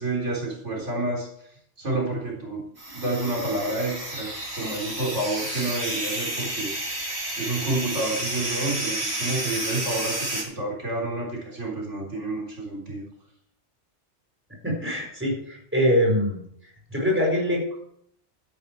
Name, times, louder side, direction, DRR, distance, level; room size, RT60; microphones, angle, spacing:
voice 1, 0.0-2.7 2.9-7.1 7.4-13.0, right 2 dB, 75° right, -3 dB, 4.1 m, -29 dB
sound 1, 2.8-10.4, right 1 dB, 60° right, 3.5 m, -31 dB
voice 2, 14.6-16.4 16.9-17.8, equal, 10° right, -1 dB, 4.8 m, -23 dB
13.0 x 11.0 x 4.5 m, 0.70 s
omnidirectional pair, 1.2 m